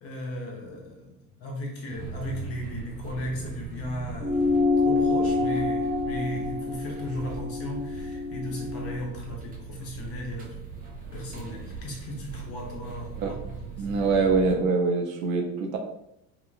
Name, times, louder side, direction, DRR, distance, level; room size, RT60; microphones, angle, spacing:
voice 1, 0.0-4.6 4.8-10.6 11.1-13.9, left 1 dB, 30° left, 0 dB, 0.8 m, -36 dB
sound 1, 1.9-14.5, right 4 dB, 20° right, 0.4 m, -40 dB
sound 2, 4.2-9.0, left 3 dB, 80° left, 0.8 m, -27 dB
voice 2, 13.8-15.8, right 4 dB, 60° right, 3 dB, 0.6 m, -24 dB
2.8 x 2.2 x 2.3 m, 0.80 s
figure-of-eight pair, 75°, 45 cm